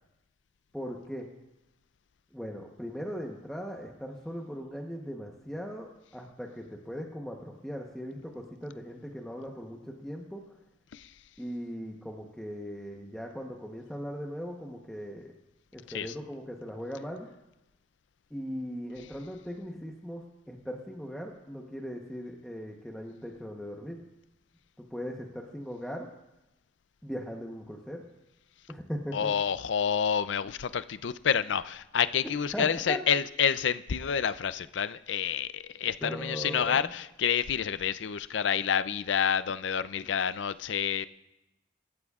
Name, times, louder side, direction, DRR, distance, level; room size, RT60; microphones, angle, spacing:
voice 1, 0.7-1.3 2.3-10.4 11.4-15.3 15.7-17.3 18.3-24.0 24.8-26.1 27.0-28.0 28.7-29.3 32.5-33.2 36.0-36.8, equal, 5° left, 0 dB, 1.0 m, -39 dB
voice 2, 29.1-41.1, left 7 dB, 75° left, 14 dB, 0.5 m, -29 dB
26.0 x 13.5 x 2.4 m, 0.95 s
head